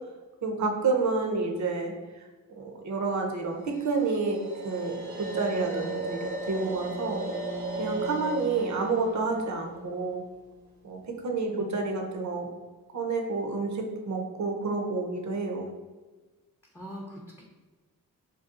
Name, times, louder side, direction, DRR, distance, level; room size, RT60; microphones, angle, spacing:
voice 1, 0.4-2.3 2.6-7.2 7.8-10.2 10.8-12.5 12.9-15.7, right 3 dB, 50° right, 2 dB, 0.7 m, -29 dB
sound 1, 3.6-10.7, right 2 dB, 85° right, 0.7 m, -36 dB
voice 2, 11.4-11.7 16.7-17.4, equal, 5° left, -3 dB, 0.6 m, -42 dB
3.9 x 2.3 x 2.4 m, 1.3 s
supercardioid pair, 45°, 37 cm